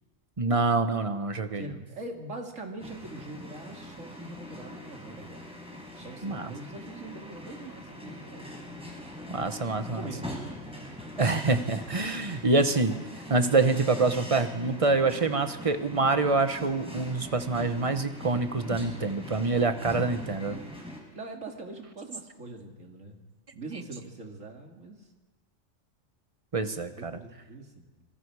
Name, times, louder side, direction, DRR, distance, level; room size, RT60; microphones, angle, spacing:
voice 1, 0.4-1.7 6.2-6.5 9.3-10.0 11.2-13.0 13.3-20.6 26.5-27.1, right 3 dB, 30° right, 9 dB, 1.1 m, -26 dB
voice 2, 1.5-5.5 5.9-8.9 9.9-10.2 19.8-20.3 21.1-23.2 23.5-25.1 26.8-28.1, right 2 dB, 80° right, 2 dB, 2.9 m, -43 dB
sound 1, 2.8-21.0, left 1 dB, 5° right, 4.4 m, -42 dB
26.5 x 21.5 x 4.9 m, 1.2 s
omnidirectional pair, 1.3 m